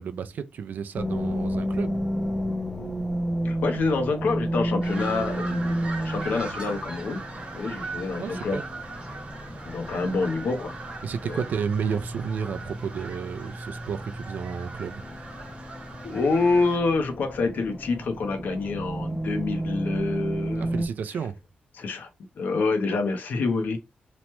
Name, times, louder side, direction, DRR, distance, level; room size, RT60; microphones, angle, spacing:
voice 1, 0.0-2.0 8.2-8.6 11.0-15.0 20.6-21.4, right 7 dB, 70° right, 0.3 m, -32 dB
sound 1, 0.9-20.9, right 1 dB, 10° left, 0.5 m, -32 dB
voice 2, 3.4-7.2 7.5-8.6 9.7-10.8 11.2-11.4 16.0-20.7 21.7-22.1 22.4-23.8, left 3 dB, 75° left, 0.6 m, -27 dB
sound 2, 4.8-16.8, right 3 dB, 40° right, 0.9 m, -40 dB
3.0 x 2.1 x 2.9 m
wide cardioid pair, 160°, 3 cm